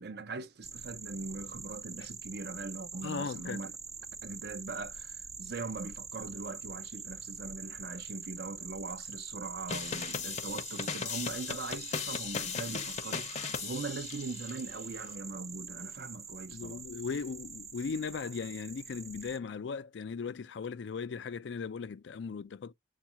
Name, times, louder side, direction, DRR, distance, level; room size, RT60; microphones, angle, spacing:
voice 1, 0.0-3.7 4.2-16.8, right 3 dB, 65° right, 0.6 m, -41 dB
sound 1, 0.6-19.4, right 5 dB, 20° right, 0.3 m, -45 dB
voice 2, 3.0-3.7 16.5-22.7, left 5 dB, 80° left, 0.4 m, -38 dB
sound 2, 9.7-14.6, left 6 dB, 40° left, 0.6 m, -37 dB
7.1 x 2.4 x 2.8 m
head